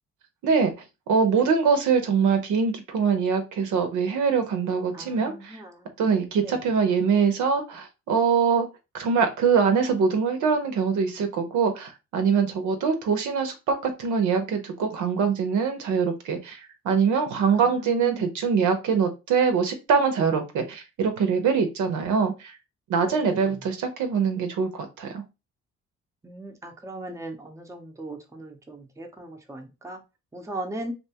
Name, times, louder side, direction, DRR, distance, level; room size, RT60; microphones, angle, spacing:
voice 1, 1.1-5.6 6.0-8.7 8.9-22.5 22.9-25.2, right 6 dB, 75° right, 7 dB, 0.7 m, -23 dB
voice 2, 4.9-6.0 6.4-6.6 17.5-18.3 23.0-23.6 26.2-30.0 30.3-31.0, right 1 dB, 10° right, 4 dB, 0.6 m, -38 dB
2.7 x 2.3 x 2.7 m, 0.26 s
cardioid pair, 90°, 30 cm